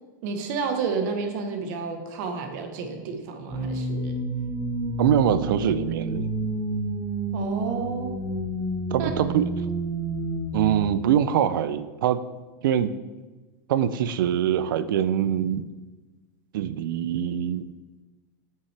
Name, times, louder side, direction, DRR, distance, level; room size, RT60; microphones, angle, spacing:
voice 1, 0.2-4.2 7.3-8.1 9.0-9.1, right 5 dB, 60° right, 5 dB, 1.2 m, -30 dB
sound 1, 3.5-10.8, right 2 dB, 15° right, 1.0 m, -30 dB
voice 2, 5.0-6.3 8.9-9.4 10.5-12.2 12.6-12.9 13.7-15.7 16.5-17.6, right 9 dB, 80° right, 14 dB, 0.4 m, -23 dB
7.5 x 5.7 x 3.4 m, 1.2 s
supercardioid pair, 135°, 11 cm